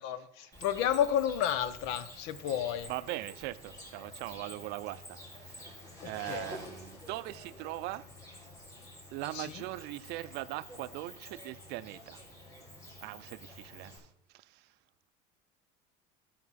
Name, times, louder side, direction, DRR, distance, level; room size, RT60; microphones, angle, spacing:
voice 1, 0.0-2.9 6.0-6.4 9.3-9.5, left 10 dB, 70° left, 0.8 m, -31 dB
Cricket, 0.5-14.0, left 1 dB, 15° left, 3.7 m, -49 dB
voice 2, 2.9-8.0 9.1-12.2 13.0-14.1 14.3-14.7, right 17 dB, 60° right, 0.5 m, -40 dB
12.0 x 6.0 x 4.1 m
supercardioid pair, 110°, 20 cm